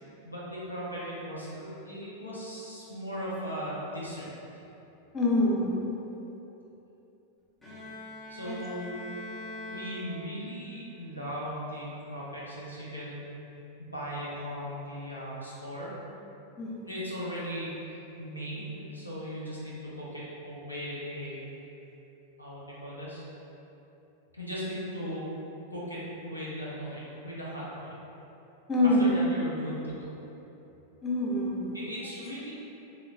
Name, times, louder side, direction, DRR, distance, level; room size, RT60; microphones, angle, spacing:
voice 1, 0.2-4.3 8.3-8.9 9.7-13.4 13.8-15.9 16.9-21.4 22.4-23.3 24.3-25.3 25.7-28.0 29.0-30.2 31.7-32.5, equal, 85° left, -8 dB, 0.6 m, -38 dB
voice 2, 5.1-5.8 8.5-8.6 16.6-16.8 28.7-29.3 31.0-31.7, left 1 dB, 20° left, -5 dB, 0.5 m, -25 dB
Bowed string instrument, 7.6-10.7, left 1 dB, 5° left, 0.9 m, -42 dB
3.0 x 2.9 x 2.4 m, 3.0 s
figure-of-eight pair, 90°, 0 cm